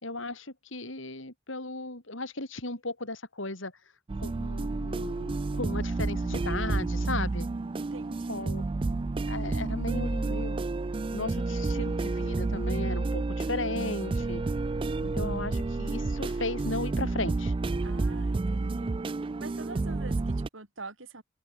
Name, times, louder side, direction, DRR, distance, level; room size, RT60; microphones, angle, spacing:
voice 1, 0.0-3.7 4.2-7.5 8.3-8.6 9.3-10.6 11.1-14.4 15.0-17.5, left 2 dB, 80° left, 5.7 m, -36 dB
sound 1, 4.1-20.5, right 3 dB, 25° right, 0.3 m, -30 dB
voice 2, 7.8-8.5 17.8-19.0 19.4-21.2, right 3 dB, 85° right, 4.9 m, -45 dB
head